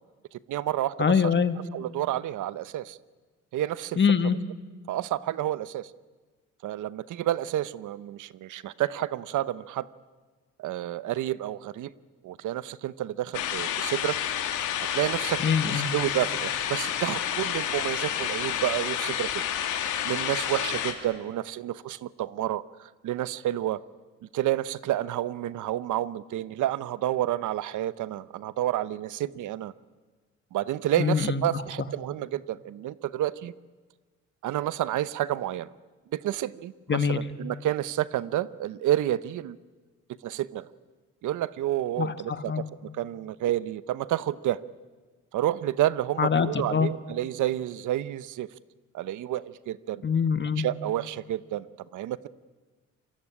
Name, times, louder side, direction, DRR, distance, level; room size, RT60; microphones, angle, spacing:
voice 1, 0.3-1.2 1.7-3.0 3.5-4.0 4.9-5.9 6.6-9.9 10.6-11.9 12.2-14.2 14.9-19.4 20.0-23.8 24.3-29.7 30.5-33.5 34.4-35.7 36.1-39.6 40.2-40.7 41.2-42.7 42.9-44.6 45.3-48.5 48.9-50.0 50.6-51.6 51.9-52.3, right 13 dB, 80° right, 17 dB, 0.9 m, -30 dB
voice 2, 1.0-1.6 4.0-4.4 15.4-15.9 31.0-31.4 36.9-37.2 42.0-42.6 46.2-46.9 50.0-50.6, left 6 dB, 40° left, 11 dB, 1.9 m, -24 dB
sound 1, 13.3-20.9, left 10 dB, 85° left, 3.0 m, -30 dB
26.5 x 22.5 x 9.9 m, 1.3 s
cardioid pair, 90°, 30 cm